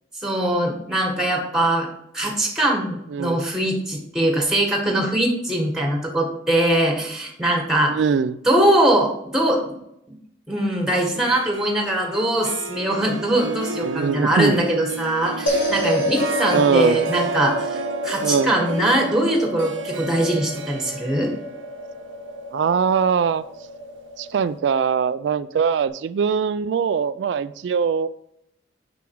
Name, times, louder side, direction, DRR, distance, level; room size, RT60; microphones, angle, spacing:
voice 1, 0.1-1.9 2.1-8.0 8.4-9.7 10.1-10.2 10.5-21.3, right 1 dB, 5° right, 1 dB, 1.5 m, -22 dB
voice 2, 3.1-3.5 7.9-8.4 13.8-14.5 16.5-17.0 18.2-18.5 22.5-23.4 24.2-28.1, right 6 dB, 70° right, 14 dB, 0.3 m, -21 dB
Harp, 11.0-23.9, right 4 dB, 85° right, 0.9 m, -33 dB
sound 1, 15.5-25.9, left 1 dB, 90° left, 3.3 m, -29 dB
7.1 x 6.0 x 4.6 m, 0.78 s
head